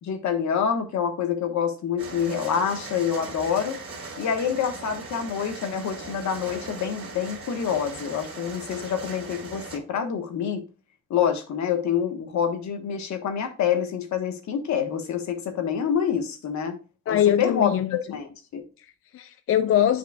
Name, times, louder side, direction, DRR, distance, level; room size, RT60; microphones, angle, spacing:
voice 1, 0.0-3.8 4.2-10.6 11.1-16.8 17.1-17.8 18.1-18.6, left 8 dB, 70° left, 1.3 m, -27 dB
sound 1, 2.0-9.8, right 3 dB, 45° right, 2.6 m, -39 dB
voice 2, 17.1-18.0 18.8-20.0, left 10 dB, 45° left, 0.4 m, -23 dB
9.3 x 4.9 x 2.3 m
cardioid pair, 90°, 30 cm